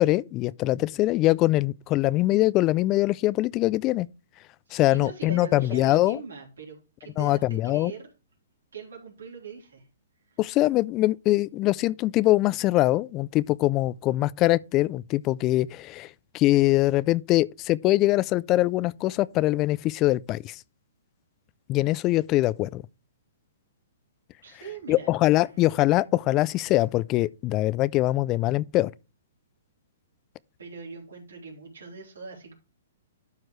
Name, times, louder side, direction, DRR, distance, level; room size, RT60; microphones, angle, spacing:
voice 1, 0.0-4.1 4.7-6.2 7.2-7.9 10.4-16.1 16.3-20.6 21.7-22.8 24.9-28.9, left 17 dB, 30° left, 0.3 m, -23 dB
voice 2, 4.7-8.1 8.7-9.9 10.3-10.6 24.4-25.1 30.6-32.5, right 5 dB, 80° right, 3.6 m, -42 dB
12.0 x 4.6 x 3.1 m
hypercardioid pair, 130°, 0 cm